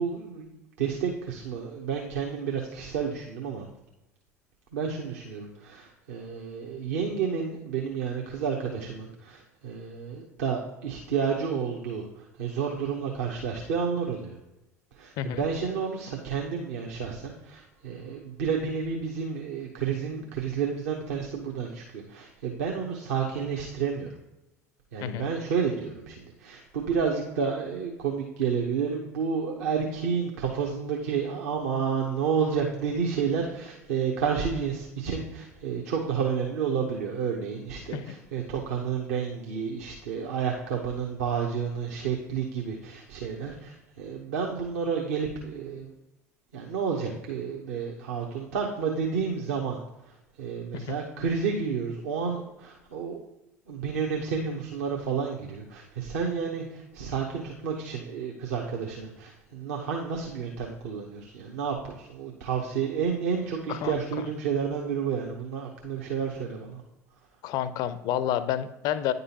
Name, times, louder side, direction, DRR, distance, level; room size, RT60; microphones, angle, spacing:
voice 1, 0.0-3.7 4.7-14.4 14.9-24.1 24.9-45.9 46.5-49.8 50.0-53.2 53.7-66.8, right 6 dB, 65° right, 0 dB, 0.9 m, -30 dB
voice 2, 67.4-69.1, left 11 dB, 50° left, 14 dB, 0.5 m, -29 dB
9.5 x 5.3 x 2.8 m, 0.92 s
figure-of-eight pair, 65°, 9 cm